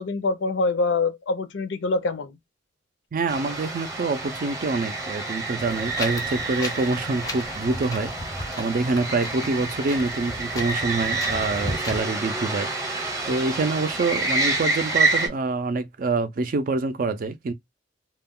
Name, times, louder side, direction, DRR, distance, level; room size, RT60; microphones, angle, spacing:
voice 1, 0.0-2.4, left 3 dB, 65° left, 0.5 m, -25 dB
voice 2, 3.1-13.0 13.3-17.5, right 3 dB, 45° right, 0.4 m, -26 dB
sound 1, 3.3-15.3, right 3 dB, 15° right, 0.8 m, -28 dB
Wind, 5.6-12.0, left 1 dB, 20° left, 0.5 m, -36 dB
2.3 x 2.2 x 3.5 m
head